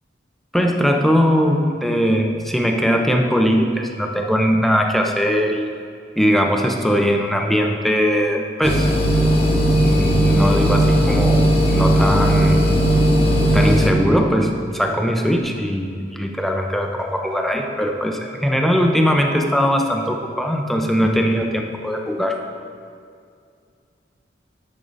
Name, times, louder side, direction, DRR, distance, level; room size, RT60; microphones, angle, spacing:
voice 1, 0.5-5.7 6.2-8.9 9.5-12.7 13.5-22.4, equal, ahead, 2 dB, 0.7 m, -20 dB
sound 1, 8.6-13.9, equal, 35° left, 1.1 m, -16 dB
10.5 x 6.6 x 4.1 m, 2.3 s
head